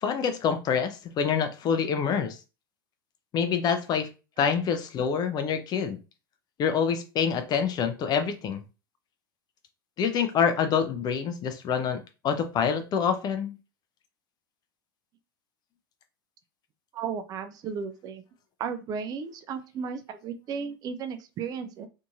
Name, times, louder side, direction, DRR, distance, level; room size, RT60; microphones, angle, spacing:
voice 1, 0.0-2.4 3.3-4.1 4.4-6.0 6.6-8.6 10.0-12.0 12.2-13.5, left 7 dB, 35° left, 8 dB, 0.5 m, -26 dB
voice 2, 16.9-18.2 18.6-21.9, right 6 dB, 35° right, 9 dB, 0.4 m, -34 dB
2.7 x 2.6 x 2.3 m, 0.31 s
hypercardioid pair, 90°, 12 cm